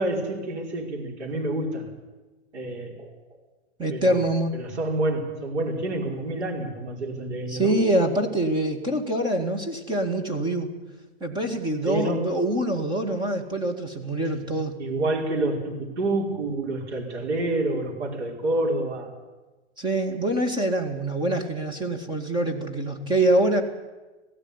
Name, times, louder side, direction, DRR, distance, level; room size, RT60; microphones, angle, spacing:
voice 1, 0.0-1.9 2.5-3.2 3.9-4.2 4.5-7.8 11.9-12.3 14.8-19.2, right 2 dB, 85° right, 1 dB, 5.4 m, -28 dB
voice 2, 3.8-4.5 7.5-10.7 11.2-14.7 19.8-23.6, right 1 dB, 15° right, 4 dB, 2.2 m, -25 dB
17.5 x 15.5 x 9.8 m, 1.2 s
hypercardioid pair, 150°, 33 cm